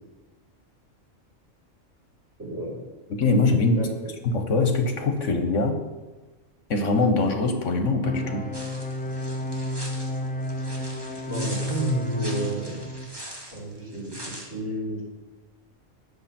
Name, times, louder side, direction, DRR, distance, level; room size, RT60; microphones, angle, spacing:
voice 1, 2.4-2.8 3.7-3.9 11.3-12.8 13.5-15.0, right 1 dB, 70° right, -7 dB, 5.6 m, -31 dB
voice 2, 3.1-3.9 4.2-5.8 6.7-8.5, left 3 dB, 70° left, 5 dB, 1.7 m, -23 dB
sound 1, 8.0-13.1, equal, 10° left, 0.5 m, -31 dB
sound 2, 8.5-14.4, right 1 dB, 20° right, 2.1 m, -41 dB
19.5 x 6.8 x 4.5 m, 1.2 s
omnidirectional pair, 1.3 m